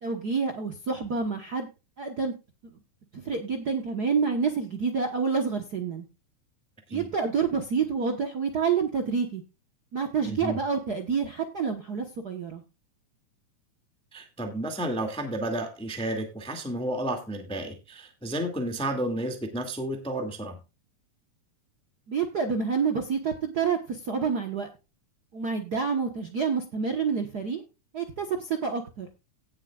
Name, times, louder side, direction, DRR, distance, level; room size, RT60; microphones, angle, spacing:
voice 1, 0.0-1.7 2.0-2.3 3.1-6.0 6.9-9.4 9.9-12.6 22.1-24.7 25.3-27.6 27.9-29.1, right 5 dB, 60° right, 5 dB, 1.0 m, -28 dB
voice 2, 10.3-10.6 14.1-20.6, right 1 dB, ahead, 4 dB, 1.5 m, -31 dB
17.5 x 7.5 x 2.4 m, 0.29 s
omnidirectional pair, 3.6 m